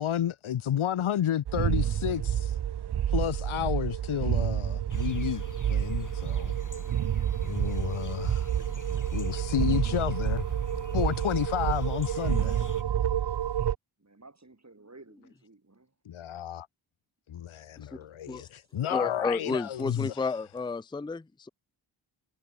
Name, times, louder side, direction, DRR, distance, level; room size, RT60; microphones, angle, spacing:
voice 1, 0.0-2.2 3.1-6.5 7.4-8.5 9.1-10.4 10.9-12.7 16.1-16.7 17.3-20.2, left 10 dB, 80° left, 0.9 m, -31 dB
sound 1, 1.5-13.8, right 10 dB, 55° right, 0.6 m, -29 dB
voice 2, 1.7-2.3 7.5-7.6 8.4-9.1 9.4-9.5 13.0-13.4 14.0-16.0 18.4-18.8, right 2 dB, 35° right, 6.6 m, -55 dB
sound 2, 4.9-12.8, left 3 dB, 40° left, 3.6 m, -45 dB
voice 3, 18.9-21.5, left 4 dB, 10° left, 0.5 m, -31 dB
cardioid pair, 55°, 48 cm